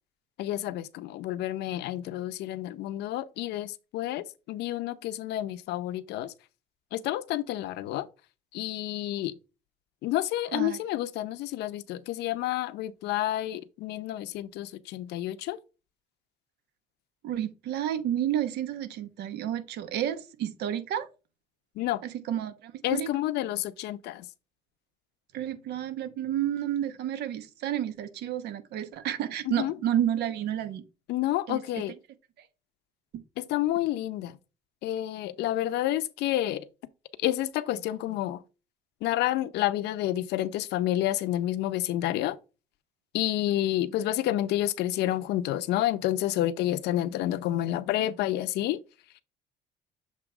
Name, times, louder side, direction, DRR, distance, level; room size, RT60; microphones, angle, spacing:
voice 1, 0.4-6.3 6.9-8.1 8.5-9.3 10.0-15.6 21.8-22.0 22.8-24.3 29.5-29.7 31.1-31.9 33.4-34.3 34.8-36.7 37.2-38.4 39.0-42.4 43.1-48.8, left 14 dB, 80° left, 0.7 m, -29 dB
voice 2, 17.2-21.1 22.0-23.1 25.3-30.8 31.5-31.8 32.4-32.5 33.1-33.2, right 11 dB, 75° right, 1.0 m, -31 dB
7.4 x 3.0 x 4.8 m
cardioid pair, 110°, 17 cm